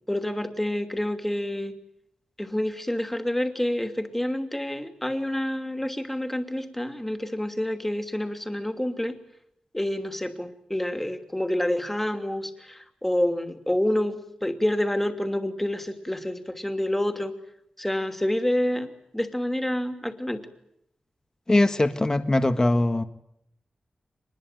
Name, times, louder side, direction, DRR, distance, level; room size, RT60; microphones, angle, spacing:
voice 1, 0.1-1.7 2.4-9.1 9.7-17.3 17.8-20.4, left 1 dB, 10° left, 7 dB, 2.9 m, -28 dB
voice 2, 21.5-23.0, left 2 dB, 25° left, 8 dB, 1.7 m, -21 dB
25.5 x 21.0 x 9.2 m, 0.79 s
wide cardioid pair, 85°, 2 cm